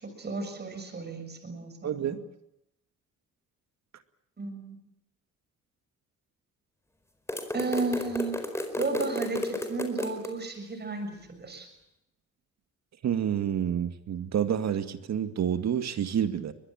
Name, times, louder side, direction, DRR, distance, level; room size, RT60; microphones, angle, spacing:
voice 1, 0.0-2.1 4.4-4.8 7.5-8.4 8.7-11.1 11.4-11.7, right 3 dB, 35° right, 7 dB, 6.8 m, -33 dB
voice 2, 1.8-2.2 13.0-16.5, right 9 dB, 60° right, 10 dB, 2.2 m, -28 dB
sound 1, 7.3-10.3, left 1 dB, 10° left, 4.6 m, -33 dB
23.5 x 21.0 x 8.8 m, 0.81 s
cardioid pair, 90°, 30 cm